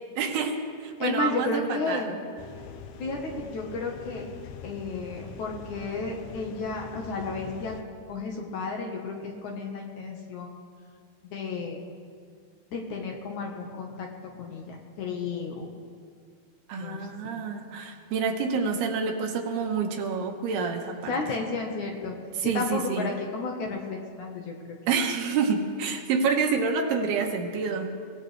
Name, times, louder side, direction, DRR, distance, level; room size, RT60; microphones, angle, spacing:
voice 1, 0.2-2.1 16.7-21.1 22.4-23.1 24.9-27.9, right 5 dB, 85° right, 2 dB, 3.3 m, -28 dB
voice 2, 1.0-2.2 3.0-4.2 4.6-7.8 8.1-10.5 11.3-11.8 12.7-15.7 16.8-17.4 21.1-22.1 22.4-24.8, left 3 dB, 60° left, 1 dB, 2.3 m, -32 dB
sound 1, 2.4-7.8, left 5 dB, 85° left, 1.6 m, -43 dB
23.5 x 16.5 x 3.3 m, 2.1 s
omnidirectional pair, 4.5 m